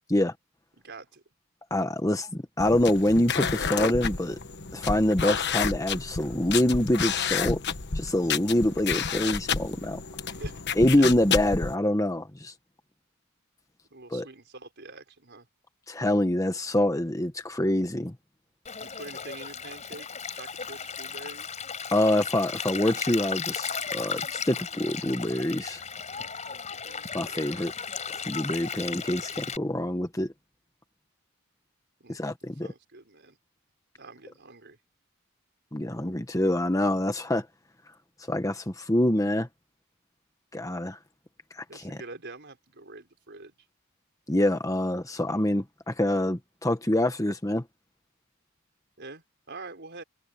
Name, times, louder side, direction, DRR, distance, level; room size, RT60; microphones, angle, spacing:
voice 1, 0.8-1.2 10.3-11.1 13.9-15.5 18.8-21.5 26.5-27.5 32.0-33.4 34.0-34.8 41.7-43.5 49.0-50.0, right 3 dB, 50° right, 5.3 m, -46 dB
voice 2, 1.7-4.4 4.7-7.6 7.9-10.0 10.8-12.5 14.1-14.2 15.9-18.1 21.9-25.8 27.1-27.7 28.1-30.3 32.1-32.7 35.7-37.5 38.3-39.5 40.5-41.0 41.5-42.0 44.3-47.6, left 1 dB, 15° left, 1.2 m, -25 dB
sound 1, 2.6-11.7, left 6 dB, 50° left, 1.2 m, -30 dB
Stream, 18.7-29.6, left 6 dB, 35° left, 4.4 m, -36 dB
head